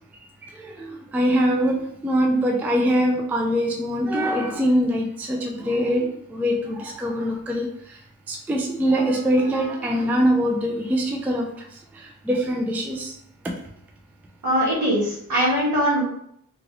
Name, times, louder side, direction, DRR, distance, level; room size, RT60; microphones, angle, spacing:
voice 1, 0.4-8.0 8.3-11.7 11.9-13.1, equal, 5° right, 1 dB, 0.3 m, -23 dB
voice 2, 14.4-16.0, equal, 65° right, -6 dB, 1.5 m, -21 dB
2.9 x 2.6 x 2.9 m, 0.72 s
wide cardioid pair, 130°, 32 cm